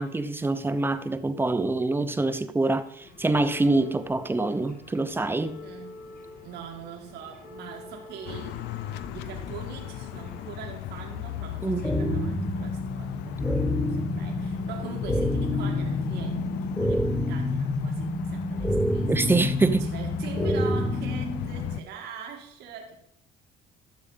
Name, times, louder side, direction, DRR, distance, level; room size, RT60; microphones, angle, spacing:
voice 1, 0.0-5.6 11.6-11.8 19.1-19.9, right 2 dB, 15° right, 0.9 m, -25 dB
sound 1, 3.0-12.5 13.3-14.5 14.7-14.9 15.9-16.0, left 3 dB, 55° left, 2.5 m, -47 dB
voice 2, 5.6-6.0 6.4-19.4 19.8-23.0, right 7 dB, 80° right, 1.8 m, -42 dB
sound 2, 8.3-21.8, left 13 dB, 85° left, 0.5 m, -37 dB
sound 3, 11.8-21.8, left 1 dB, 10° left, 1.8 m, -28 dB
12.5 x 6.9 x 5.5 m
cardioid pair, 110°, 17 cm